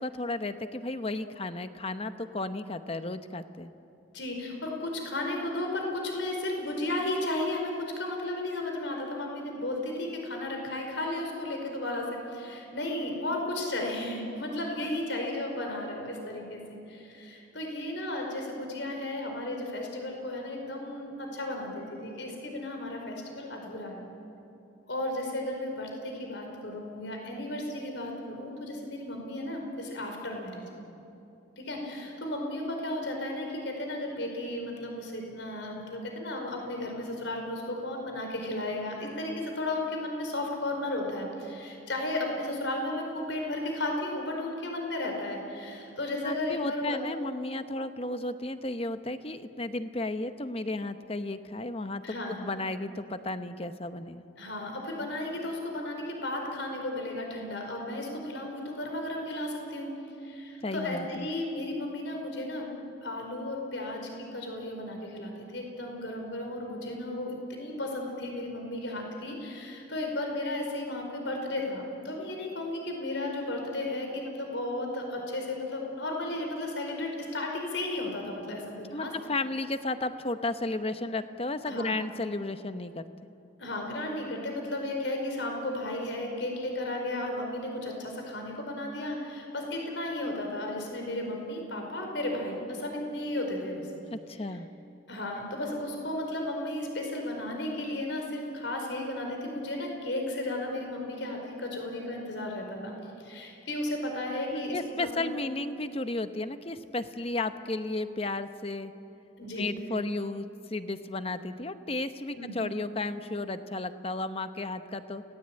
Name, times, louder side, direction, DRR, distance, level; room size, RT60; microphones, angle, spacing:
voice 1, 0.0-3.7 46.2-54.3 60.6-61.3 78.9-83.0 94.1-94.7 104.5-108.9 109.6-115.2, left 2 dB, 30° left, 10 dB, 1.0 m, -33 dB
voice 2, 4.1-24.0 24.9-30.6 31.6-47.0 52.0-52.4 54.4-59.9 60.2-62.7 63.0-79.1 81.7-81.9 83.6-93.9 95.1-104.8 105.2-105.3 109.4-109.7 112.3-112.6, left 1 dB, 70° left, 2 dB, 4.8 m, -34 dB
29.0 x 19.0 x 8.9 m, 2.8 s
head